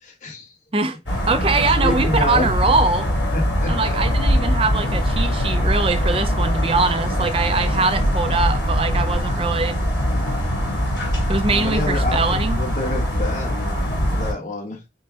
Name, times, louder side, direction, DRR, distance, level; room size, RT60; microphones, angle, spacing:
voice 1, 0.0-0.5 1.8-2.6 3.3-4.0 11.5-13.8 14.1-14.8, left 2 dB, 45° left, 1.4 m, -28 dB
voice 2, 0.7-3.1 3.7-9.8 11.3-12.6, right 3 dB, 30° right, 0.5 m, -22 dB
sound 1, 1.1-14.3, equal, 75° left, 3.2 m, -22 dB
5.5 x 2.3 x 3.9 m
head